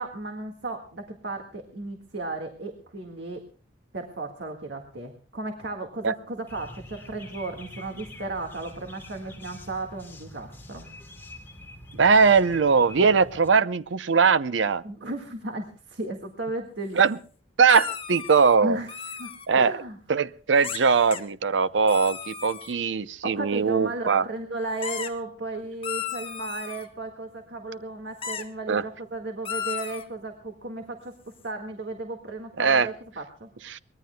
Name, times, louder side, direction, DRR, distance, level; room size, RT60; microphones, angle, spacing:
voice 1, 0.0-3.4 3.9-10.9 14.8-17.0 18.6-18.9 19.2-20.0 23.2-31.1 31.4-33.5, right 2 dB, 65° right, 3 dB, 1.8 m, -34 dB
sound 1, 6.5-13.5, left 1 dB, 15° left, 3.1 m, -45 dB
voice 2, 11.9-14.8 17.0-17.2 17.6-18.8 19.5-19.7 20.1-24.2 28.7-28.8 32.6-32.9 33.6-33.8, right 5 dB, 85° right, 16 dB, 0.6 m, -21 dB
sound 2, 17.7-18.6 18.9-19.5 20.6-20.8 21.1-21.2 21.9-22.8 24.8-25.1 25.8-26.9 28.2-28.4 29.4-30.0, left 7 dB, 30° left, 1.4 m, -34 dB
23.5 x 20.0 x 2.2 m, 0.39 s
head